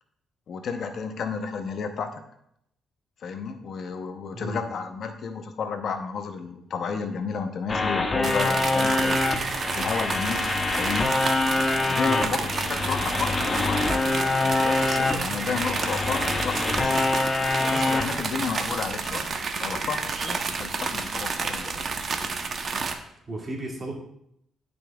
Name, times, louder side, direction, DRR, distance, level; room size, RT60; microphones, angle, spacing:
voice 1, 0.5-2.2 3.2-9.2 9.8-11.1 11.9-14.1 14.4-17.0 17.6-19.3 19.6-21.8, left 5 dB, 60° left, 7 dB, 0.7 m, -32 dB
voice 2, 4.3-4.7 12.0-12.3 23.3-23.9, right 2 dB, 30° right, -2 dB, 2.2 m, -34 dB
sound 1, 7.7-18.2, left 2 dB, 25° left, 0.9 m, -25 dB
sound 2, 8.2-22.9, right 4 dB, 50° right, 0.8 m, -30 dB
12.5 x 5.1 x 2.3 m, 0.75 s
cardioid pair, 90°, 0 cm